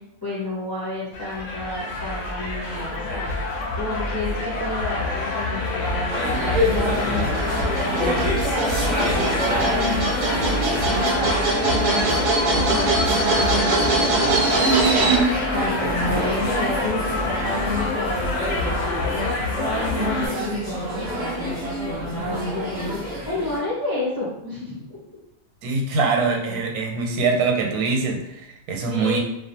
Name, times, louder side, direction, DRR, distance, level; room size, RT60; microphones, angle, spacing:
voice 1, 0.2-3.5 3.8-10.6 10.9-24.9 26.5-26.6 28.8-29.2, left 2 dB, 30° left, -8 dB, 0.4 m, -31 dB
sound 1, 1.1-20.3, left 2 dB, 65° left, 0.8 m, -27 dB
sound 2, 6.1-23.6, equal, 25° right, 0.7 m, -27 dB
sound 3, 6.1-15.2, right 2 dB, 75° right, 0.5 m, -23 dB
voice 2, 25.6-29.2, right 4 dB, 90° right, 1 dB, 1.1 m, -23 dB
2.3 x 2.2 x 2.7 m, 0.86 s
omnidirectional pair, 1.5 m